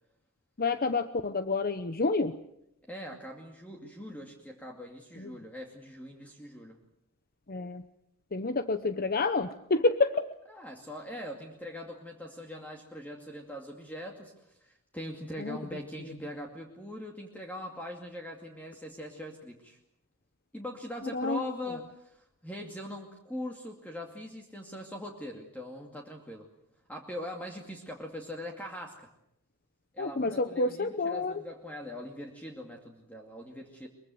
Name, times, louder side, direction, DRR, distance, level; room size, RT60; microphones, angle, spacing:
voice 1, 0.6-2.3 5.2-5.3 7.5-7.8 8.3-10.3 15.4-15.6 21.1-21.4 30.0-31.4, left 3 dB, 40° left, 10 dB, 0.9 m, -29 dB
voice 2, 2.9-6.8 10.5-19.8 20.5-26.5 26.9-29.1 29.9-33.9, left 1 dB, 5° left, 1 dB, 2.4 m, -42 dB
23.5 x 23.0 x 7.8 m, 0.79 s
head